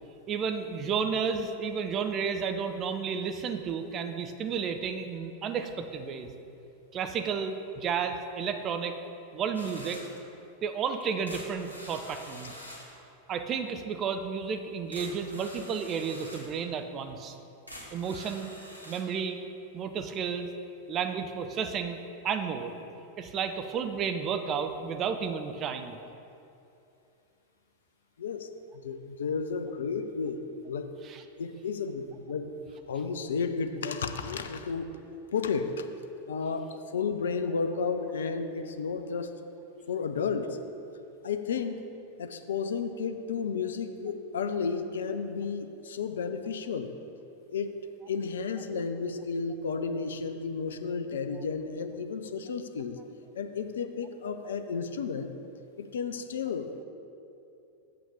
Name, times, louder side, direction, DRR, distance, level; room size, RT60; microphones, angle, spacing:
voice 1, 0.3-6.3 6.9-9.0 9.3-10.0 10.6-12.5 13.3-17.4 17.9-18.5 18.9-19.4 19.7-20.5 20.9-22.7 23.2-26.0 31.0-31.2, right 6 dB, 30° right, 7 dB, 0.6 m, -32 dB
sound 1, 9.5-10.2 11.0-13.0 14.5-14.6 14.9-16.6 17.2-17.3 17.7-19.0, left 1 dB, 90° right, 1.3 m, -46 dB
voice 2, 28.2-28.5 28.8-30.9 31.4-32.5 32.9-34.9 35.3-35.9 36.3-39.3 39.9-40.6 41.2-41.8 42.2-46.9 47.5-47.8 48.1-53.0 53.4-55.3 55.8-56.8, left 5 dB, 65° left, 8 dB, 0.5 m, -32 dB
7.1 x 5.9 x 6.4 m, 2.7 s
figure-of-eight pair, 90°, 0 cm